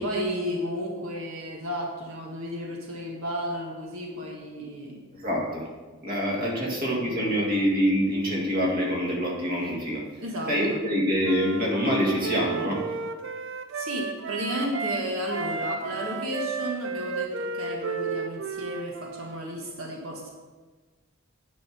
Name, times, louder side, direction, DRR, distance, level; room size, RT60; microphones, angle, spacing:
voice 1, 0.0-5.0 6.6-7.4 10.2-10.9 13.7-20.3, equal, 85° right, -1 dB, 1.5 m, -33 dB
voice 2, 5.1-5.6 6.0-10.0 10.5-12.8, equal, 45° right, -3 dB, 2.1 m, -25 dB
Wind instrument woodwind instrument, 11.2-15.0 15.3-19.4, right 4 dB, 65° right, 0.6 m, -33 dB
9.6 x 5.4 x 6.0 m, 1.3 s
head